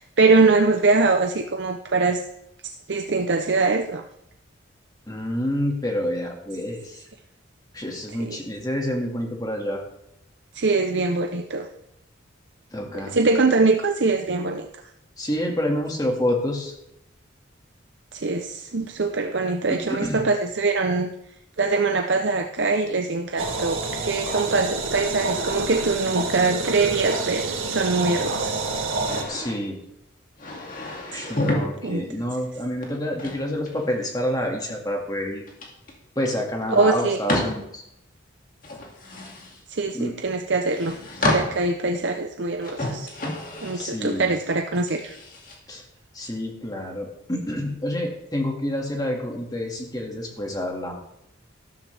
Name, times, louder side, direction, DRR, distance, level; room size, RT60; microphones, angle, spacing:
voice 1, 0.0-2.2 2.6-4.0 8.2-8.4 10.5-11.7 12.9-14.7 18.1-21.1 21.6-28.7 31.1-31.3 31.8-32.1 36.7-37.2 39.7-43.1 43.6-45.2, right 3 dB, 60° right, 5 dB, 0.7 m, -23 dB
voice 2, 5.1-7.0 7.7-9.8 12.7-13.1 15.2-16.7 19.7-20.2 29.3-29.8 31.1-35.4 36.2-37.8 39.9-40.1 43.7-44.3 45.7-45.8 46.1-51.0, left 1 dB, 20° left, 1 dB, 2.0 m, -28 dB
sound 1, 23.4-29.2, right 3 dB, 80° right, 1.9 m, -28 dB
sound 2, 29.1-29.6 30.4-31.7 32.8-34.1 35.5-35.9 36.2-36.3 37.3-37.6 38.6-39.6 40.6-41.7 42.6-43.8 44.7-45.5, left 1 dB, 40° left, 2.4 m, -29 dB
13.5 x 12.5 x 3.4 m, 0.80 s
head